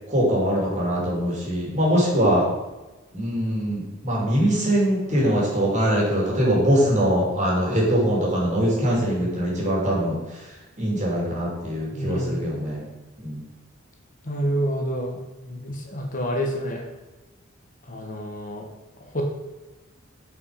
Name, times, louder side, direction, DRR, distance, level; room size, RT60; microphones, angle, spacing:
voice 1, 0.1-2.5 3.1-12.8 13.2-13.4, equal, 35° right, -4 dB, 3.0 m, -22 dB
voice 2, 11.9-12.3 14.2-15.2 15.4-16.9 17.9-18.7 19.1-19.2, equal, 40° left, 1 dB, 1.2 m, -28 dB
8.2 x 5.3 x 5.1 m, 1.1 s
head